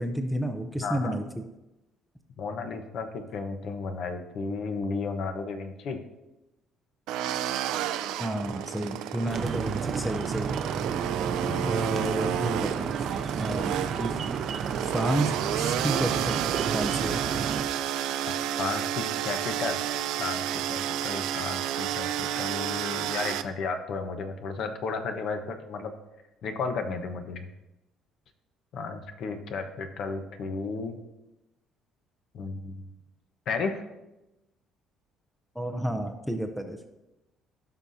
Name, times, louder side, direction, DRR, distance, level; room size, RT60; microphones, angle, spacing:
voice 1, 0.0-1.4 8.2-10.6 11.6-13.0 13.4-13.7 14.0-14.2 14.9-17.2 35.5-36.8, right 1 dB, ahead, 6 dB, 0.6 m, -31 dB
voice 2, 0.8-1.1 2.4-6.0 11.4-11.9 18.6-19.8 20.2-25.9 26.4-27.5 28.7-31.0 32.3-32.9 33.5-33.8, left 4 dB, 55° left, 7 dB, 1.0 m, -33 dB
sound 1, 7.1-23.4, right 11 dB, 85° right, 0.5 m, -31 dB
sound 2, 9.3-17.6, right 6 dB, 40° right, 0.7 m, -32 dB
16.0 x 5.8 x 2.7 m, 0.98 s
cardioid pair, 145°, 0 cm